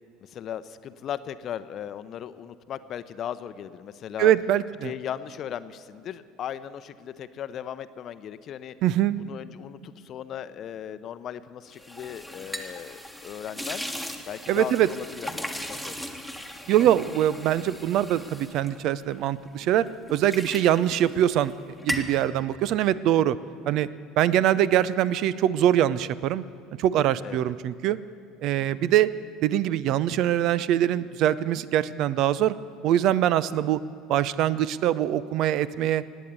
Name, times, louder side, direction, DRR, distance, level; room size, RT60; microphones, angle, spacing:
voice 1, 0.3-4.3 4.8-8.8 9.2-13.8 14.3-16.0 19.6-19.9 27.2-27.5 28.6-28.9, left 9 dB, 45° left, 13 dB, 0.7 m, -37 dB
voice 2, 4.2-4.9 8.8-9.2 14.5-14.9 16.7-21.5 21.8-23.4 23.7-23.9 24.2-26.4 26.8-28.0 28.4-29.1 29.4-32.5 32.8-33.8 34.1-36.0, right 11 dB, 55° right, 18 dB, 0.5 m, -23 dB
sound 1, 11.7-19.5 19.9-21.5 21.8-22.2, equal, 5° right, 1.5 m, -37 dB
17.0 x 9.2 x 8.2 m, 2.5 s
hypercardioid pair, 65°, 0 cm